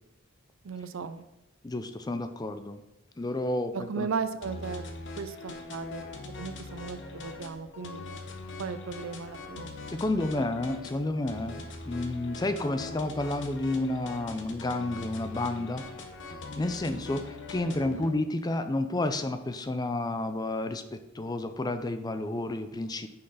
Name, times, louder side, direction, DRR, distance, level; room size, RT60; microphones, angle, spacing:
voice 1, 0.6-1.2 3.7-4.8 5.2-6.1 6.4-8.0 8.6-9.8 10.2-10.5 17.1-17.2 17.6-18.1, right 5 dB, 70° right, 11 dB, 0.5 m, -36 dB
voice 2, 1.6-2.8 3.2-4.1 9.9-15.9 16.6-23.1, left 2 dB, 20° left, 9 dB, 0.4 m, -31 dB
sound 1, 4.4-18.1, left 3 dB, 60° left, 0.9 m, -42 dB
6.5 x 5.7 x 4.1 m, 0.95 s
head